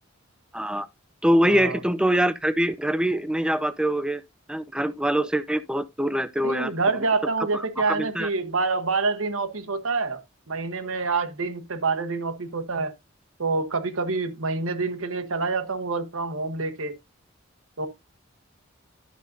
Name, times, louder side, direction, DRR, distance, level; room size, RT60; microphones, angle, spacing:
voice 1, 0.5-0.9 1.2-4.2 4.5-6.7 7.5-7.6 7.9-8.3, equal, 5° right, 0.5 m, -24 dB
voice 2, 1.4-1.8 6.4-10.2 10.5-12.9 13.4-16.9 17.8-17.9, right 3 dB, 85° right, 1.2 m, -27 dB
11.5 x 6.7 x 2.7 m
head